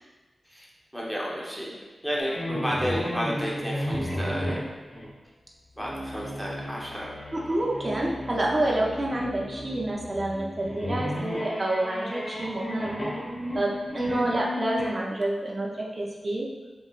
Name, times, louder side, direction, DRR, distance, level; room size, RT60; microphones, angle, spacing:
voice 1, 0.9-1.8 2.0-4.6 5.8-7.1, equal, 5° right, -5 dB, 0.9 m, -31 dB
sound 1, 2.2-5.1 5.7-14.8, equal, 35° left, 1.1 m, -34 dB
voice 2, 7.3-13.0 13.5-15.7 16.0-16.5, right 1 dB, 30° right, -3 dB, 0.6 m, -28 dB
7.1 x 3.1 x 2.5 m, 1.2 s
wide cardioid pair, 115°, 0 cm